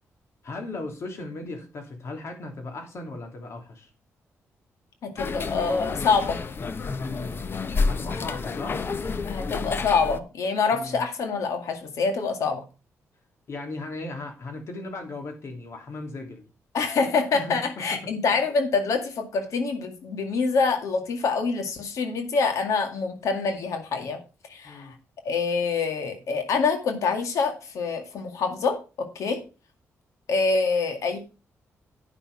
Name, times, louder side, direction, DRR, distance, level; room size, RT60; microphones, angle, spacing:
voice 1, 0.4-3.9 7.0-7.4 7.9-8.8 10.7-11.0 13.5-16.4 17.3-18.1 24.6-25.0, left 2 dB, 60° left, 3 dB, 3.0 m, -37 dB
voice 2, 5.0-6.4 9.3-12.6 16.7-24.2 24.5-24.9 25.3-29.4 30.3-31.3, left 4 dB, 80° left, 6 dB, 2.0 m, -26 dB
sound 1, 5.2-10.2, left 4 dB, 45° left, 0.8 m, -29 dB
9.9 x 6.1 x 4.9 m, 0.33 s
cardioid pair, 80°, 5 cm